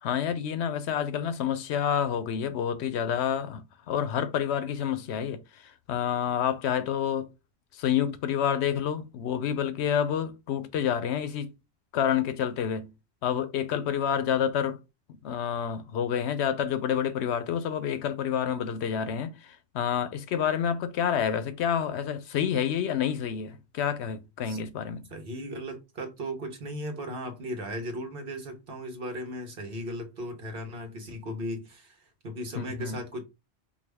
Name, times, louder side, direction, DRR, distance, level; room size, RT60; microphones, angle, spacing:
voice 1, 0.0-7.3 7.7-11.5 11.9-12.9 13.2-14.8 15.2-25.1 32.5-33.0, left 8 dB, 85° left, 0.9 m, -28 dB
voice 2, 25.1-33.2, equal, 60° right, 1.2 m, -37 dB
4.8 x 2.3 x 3.4 m
omnidirectional pair, 1.1 m